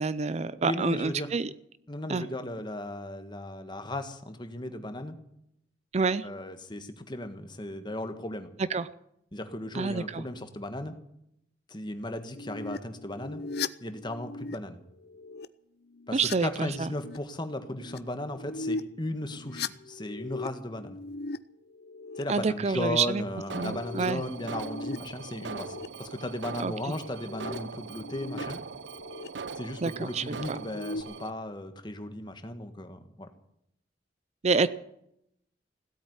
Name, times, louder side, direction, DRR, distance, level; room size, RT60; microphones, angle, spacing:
voice 1, 0.0-1.5 2.1-2.2 5.9-6.3 8.7-8.9 9.7-10.2 16.1-16.9 22.3-23.2 23.5-24.2 26.6-26.9 29.8-30.6 34.4-34.7, right 4 dB, 35° right, 16 dB, 0.5 m, -28 dB
voice 2, 0.6-1.3 1.9-5.2 6.2-8.5 9.3-10.9 11.7-13.4 13.8-14.8 16.1-21.0 22.2-28.6 29.5-33.3, left 1 dB, 25° left, 8 dB, 1.5 m, -36 dB
sound 1, 12.4-14.6 14.9-15.5 15.9-16.4 16.7-17.2 17.5-18.0 18.3-18.8 19.2-21.4 21.7-22.2 23.4-25.0 25.3-25.9 27.0-28.4 28.8-29.3 30.6-31.0, left 3 dB, 60° left, 0.6 m, -39 dB
Alarm, 23.5-31.3, right 4 dB, 80° right, 0.7 m, -41 dB
16.5 x 8.5 x 9.6 m, 0.77 s
head